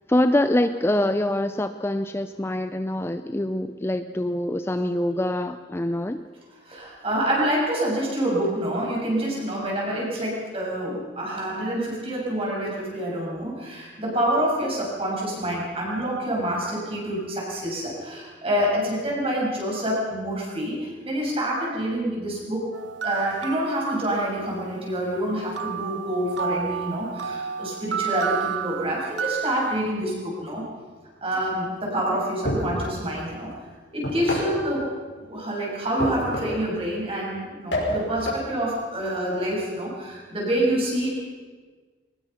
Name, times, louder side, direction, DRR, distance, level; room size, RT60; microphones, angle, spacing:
voice 1, 0.1-6.2, left 1 dB, 15° left, 9 dB, 0.5 m, -24 dB
voice 2, 6.7-22.7 23.0-30.7 31.2-33.5 33.9-34.9 35.2-41.1, right 1 dB, 30° right, -4 dB, 7.4 m, -27 dB
sound 1, 22.7-24.6 25.6-29.8, right 8 dB, 75° right, 0.7 m, -31 dB
sound 2, 32.4-32.9 34.0-34.6 36.0-36.7 37.7-38.5, equal, 75° left, 5.5 m, -27 dB
22.5 x 20.0 x 5.8 m, 1.5 s
head